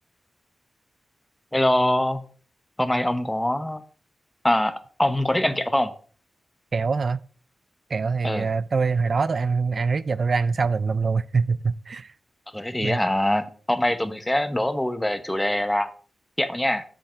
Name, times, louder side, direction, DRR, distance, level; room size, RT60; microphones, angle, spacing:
voice 1, 1.5-2.2 2.8-3.8 4.4-5.9 8.2-8.5 12.5-15.9 16.4-16.8, left 1 dB, 10° left, 1.0 m, -23 dB
voice 2, 6.7-7.2 7.9-12.1 12.8-13.0, right 4 dB, 55° right, 0.3 m, -24 dB
7.6 x 7.1 x 5.1 m
cardioid pair, 70°, 0 cm